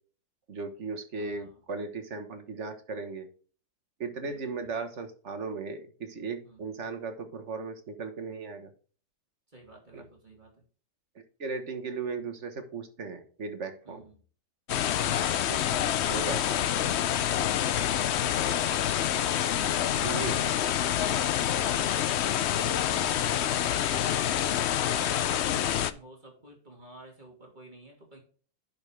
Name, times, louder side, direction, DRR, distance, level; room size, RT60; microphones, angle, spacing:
voice 1, 0.5-3.3 4.0-8.7 9.9-10.0 11.4-14.0 15.5-15.6 16.1-16.6 18.5-18.6 20.0-20.4, right 4 dB, 45° right, 7 dB, 1.5 m, -37 dB
voice 2, 1.1-1.6 4.2-4.7 6.4-6.6 9.5-10.6 13.8-14.2 19.5-28.2, right 1 dB, 25° right, -1 dB, 2.7 m, -51 dB
sound 1, 14.7-25.9, left 10 dB, 90° left, 0.6 m, -27 dB
10.5 x 5.4 x 3.3 m, 0.41 s
omnidirectional pair, 1.8 m